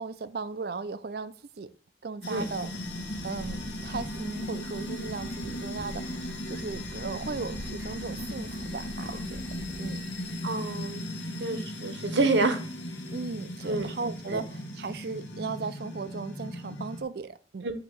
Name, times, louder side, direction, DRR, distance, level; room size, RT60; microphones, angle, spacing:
voice 1, 0.0-1.7 2.0-2.7 3.2-9.4 9.8-10.0 13.1-17.7, right 4 dB, 55° right, 0.5 m, -37 dB
sound 1, 2.2-17.0, left 1 dB, 85° left, 1.2 m, -37 dB
sound 2, 2.4-10.9, right 1 dB, 20° right, 0.7 m, -45 dB
voice 2, 10.4-11.0 11.4-12.6 13.6-13.9 14.3-14.4 17.6-17.7, right 2 dB, 80° right, 1.0 m, -28 dB
8.1 x 2.9 x 6.1 m
head